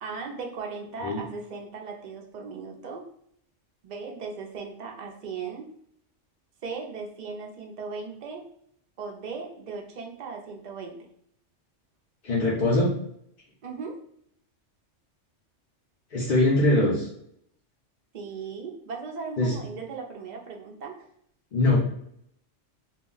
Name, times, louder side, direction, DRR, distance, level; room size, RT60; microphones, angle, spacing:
voice 1, 0.0-3.1 3.8-5.7 6.6-8.5 9.0-11.0 13.6-14.0 18.1-21.1, right 4 dB, 55° right, 1 dB, 0.5 m, -37 dB
voice 2, 12.2-12.9 16.1-17.1 19.4-19.6 21.5-21.8, left 2 dB, 50° left, -5 dB, 0.6 m, -22 dB
2.3 x 2.1 x 3.7 m, 0.70 s
omnidirectional pair, 1.3 m